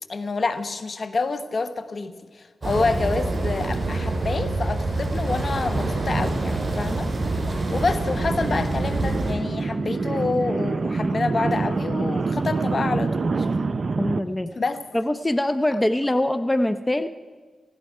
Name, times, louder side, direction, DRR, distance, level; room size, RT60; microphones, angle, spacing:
voice 1, 0.1-13.5 14.6-14.8, left 3 dB, 60° left, 11 dB, 1.1 m, -28 dB
sound 1, 2.6-9.3, right 2 dB, 40° right, 5.3 m, -26 dB
sound 2, 2.8-14.2, right 3 dB, 60° right, 0.6 m, -28 dB
voice 2, 14.0-14.5 14.9-17.1, left 1 dB, 20° left, 12 dB, 0.7 m, -23 dB
18.5 x 16.0 x 4.8 m, 1.4 s
supercardioid pair, 40°, 0 cm